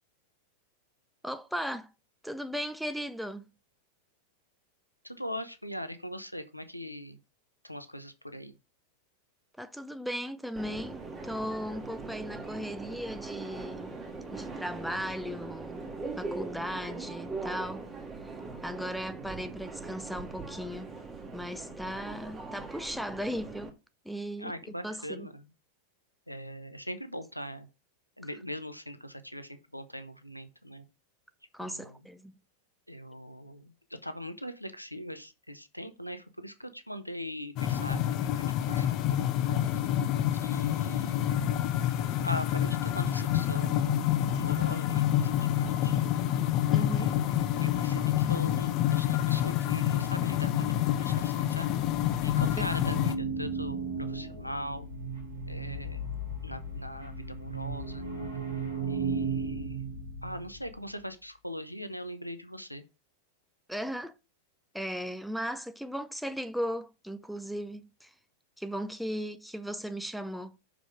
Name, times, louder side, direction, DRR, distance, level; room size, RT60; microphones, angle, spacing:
voice 1, 1.2-1.9 2.2-3.5 9.6-14.0 14.3-15.8 16.2-17.9 18.2-18.3 18.6-20.9 21.3-23.7 24.0-24.5 24.8-25.3 31.5-32.3 46.7-47.1 52.6-52.7 63.7-64.1 64.7-68.1 68.6-70.6, equal, ahead, 0.6 m, -37 dB
voice 2, 5.0-7.2 7.6-8.6 24.4-25.5 26.3-27.7 28.2-30.9 31.6-32.0 32.9-33.7 34.0-39.2 40.4-41.5 42.2-46.0 46.7-51.7 52.2-54.9 55.5-56.1 56.4-58.0 58.9-59.8 60.2-62.8, equal, 90° left, 0.9 m, -41 dB
Subway metro underground, 10.6-23.7, right 3 dB, 15° right, 1.8 m, -41 dB
sound 1, 37.6-53.1, left 11 dB, 40° left, 0.7 m, -28 dB
sound 2, 51.8-60.8, right 3 dB, 85° right, 2.7 m, -36 dB
6.4 x 5.1 x 5.0 m
figure-of-eight pair, 90°, 0 cm